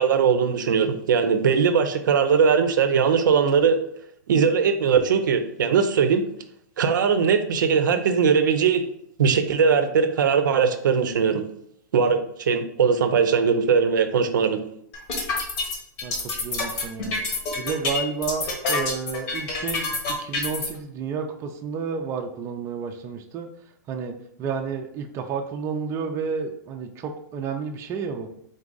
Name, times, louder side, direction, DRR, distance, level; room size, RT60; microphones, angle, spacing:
voice 1, 0.0-3.8 4.3-6.2 6.8-8.8 9.2-11.4 11.9-14.6, right 6 dB, 80° right, 8 dB, 0.5 m, -20 dB
sound 1, 14.9-20.7, left 3 dB, 50° left, 1.3 m, -27 dB
voice 2, 16.4-17.2 17.6-19.9 20.2-23.5 23.9-28.3, right 5 dB, 25° right, 4 dB, 0.4 m, -31 dB
3.9 x 2.4 x 3.8 m, 0.71 s
hypercardioid pair, 130°, 10 cm